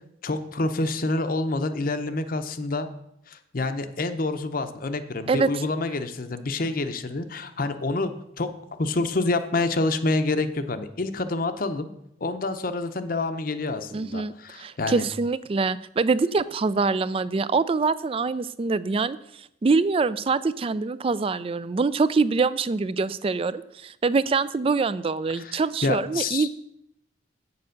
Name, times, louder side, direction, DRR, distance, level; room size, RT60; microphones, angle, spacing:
voice 1, 0.2-2.9 3.3-8.1 8.4-8.5 8.8-11.9 12.2-15.1 25.3-26.5, left 2 dB, 50° left, 9 dB, 0.7 m, -27 dB
voice 2, 13.9-26.5, right 4 dB, 30° right, 17 dB, 0.3 m, -24 dB
8.2 x 6.9 x 6.4 m, 0.79 s
head